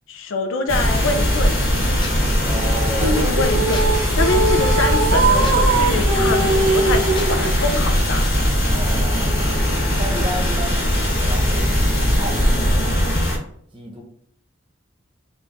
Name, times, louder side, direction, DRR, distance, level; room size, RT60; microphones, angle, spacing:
voice 1, 0.1-1.6 3.0-3.8 4.2-8.3, left 2 dB, 75° left, 6 dB, 0.4 m, -25 dB
sound 1, 0.7-13.4, equal, 55° left, 1.2 m, -20 dB
sound 2, 0.8-7.9, left 1 dB, 25° left, 0.5 m, -33 dB
voice 2, 2.4-3.3 8.7-9.4 10.0-12.9 13.7-14.0, right 1 dB, 25° right, 1 dB, 0.8 m, -32 dB
sound 3, 3.0-7.5, right 3 dB, 75° right, 0.5 m, -21 dB
3.5 x 2.3 x 3.8 m, 0.64 s
head